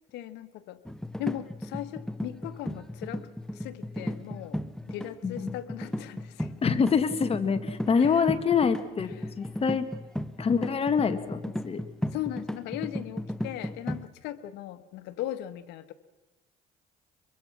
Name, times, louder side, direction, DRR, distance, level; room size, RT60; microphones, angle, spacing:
voice 1, 0.1-0.8 1.2-3.3 3.5-4.6 4.9-6.6 7.8-8.3 9.0-9.3 12.1-15.9, left 13 dB, 90° left, 10 dB, 1.3 m, -38 dB
sound 1, 0.9-14.1, left 1 dB, 5° left, 0.9 m, -35 dB
voice 2, 6.6-9.9 10.4-11.8, left 6 dB, 35° left, 9 dB, 1.6 m, -26 dB
24.0 x 22.5 x 6.0 m, 1.2 s
cardioid pair, 110°, 17 cm